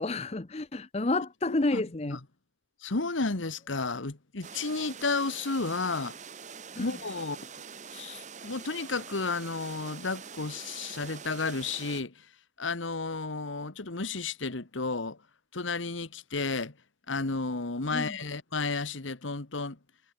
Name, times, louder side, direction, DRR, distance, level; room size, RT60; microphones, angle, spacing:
voice 1, 0.0-2.2 6.7-6.9 17.9-18.2, left 2 dB, 35° left, 0.7 m, -30 dB
voice 2, 1.5-2.2 2.8-6.2 6.8-7.6 7.9-12.3 12.6-15.2 15.5-16.7 17.1-19.8, left 3 dB, 80° left, 1.5 m, -32 dB
sound 1, 4.4-12.0, right 6 dB, 40° right, 1.2 m, -45 dB
head